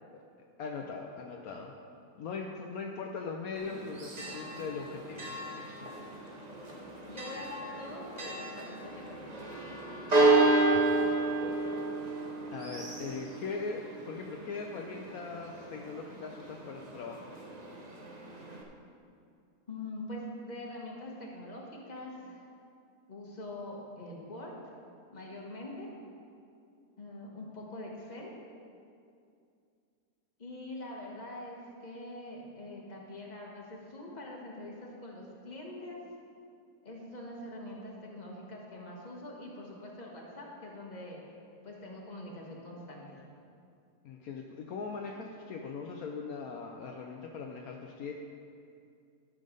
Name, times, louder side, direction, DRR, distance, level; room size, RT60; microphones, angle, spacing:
voice 1, 0.6-1.7 2.1-5.9 10.2-10.9 12.5-17.3 44.0-48.1, left 4 dB, 70° left, 2 dB, 1.1 m, -40 dB
Church bell, 3.6-18.6, right 2 dB, 30° right, 0.9 m, -32 dB
voice 2, 7.0-9.2 19.7-22.4 23.1-24.5 25.1-25.9 27.0-28.3 30.4-36.0 36.8-41.2 41.6-43.2, left 1 dB, 25° left, -2 dB, 1.6 m, -44 dB
13.0 x 6.5 x 5.3 m, 2.4 s
omnidirectional pair, 1.7 m